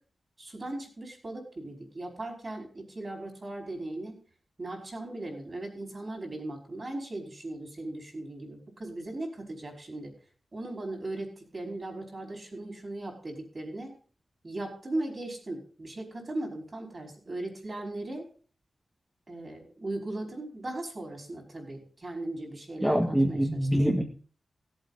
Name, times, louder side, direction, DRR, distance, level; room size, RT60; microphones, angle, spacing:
voice 1, 0.4-4.2 4.6-10.1 10.5-13.9 14.4-18.2 19.3-23.8, right 2 dB, 40° right, 1 dB, 5.0 m, -38 dB
voice 2, 22.8-24.0, equal, 5° right, 0 dB, 1.7 m, -24 dB
17.5 x 8.2 x 4.1 m, 0.42 s
wide cardioid pair, 90°, 0 cm